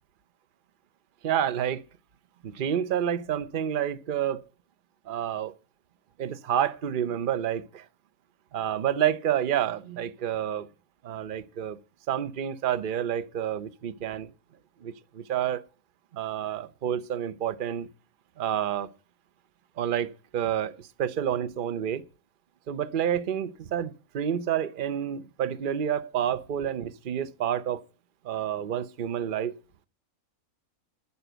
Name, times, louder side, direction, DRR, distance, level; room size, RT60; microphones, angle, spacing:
voice 1, 1.2-1.8 2.4-4.4 5.1-5.5 6.2-7.8 8.5-10.7 11.0-11.8 12.1-14.3 14.8-15.6 16.1-17.9 18.4-18.9 19.8-20.7 21.0-22.0 22.7-27.8 28.2-29.5, right 9 dB, 45° right, 0.8 m, -29 dB
10.0 x 6.9 x 7.9 m
omnidirectional pair, 1.5 m